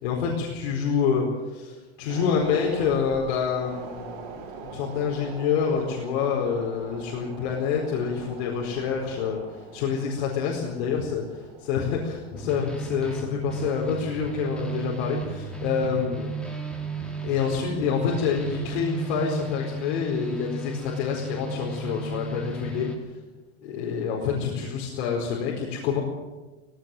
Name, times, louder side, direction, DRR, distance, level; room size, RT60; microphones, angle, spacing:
voice 1, 0.0-4.3 4.6-16.3 17.2-22.9 23.6-26.0, left 6 dB, 75° left, -2 dB, 4.6 m, -27 dB
sound 1, 2.1-16.6 17.0-17.1, right 5 dB, 70° right, 4.9 m, -44 dB
sound 2, 12.3-23.0, right 3 dB, 5° left, 3.1 m, -34 dB
17.0 x 17.0 x 9.2 m, 1.2 s
supercardioid pair, 135°, 33 cm